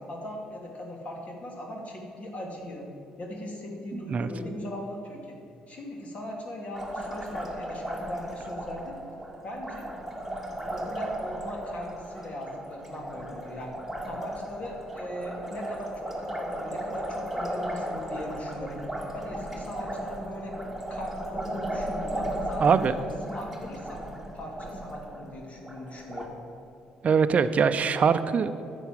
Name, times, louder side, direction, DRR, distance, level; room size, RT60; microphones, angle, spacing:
voice 1, 0.0-2.9 3.2-5.4 5.7-8.9 9.4-9.9 10.7-13.7 14.1-18.8 19.1-20.5 20.9-23.0 23.2-24.0 24.3-26.3, left 1 dB, 45° left, 0 dB, 2.7 m, -39 dB
Liquid, 6.7-26.3, right 1 dB, ahead, 2.1 m, -36 dB
voice 2, 22.6-22.9 27.0-28.6, right 6 dB, 45° right, 10 dB, 0.5 m, -22 dB
10.0 x 7.1 x 7.5 m, 2.7 s
supercardioid pair, 60°, 3 cm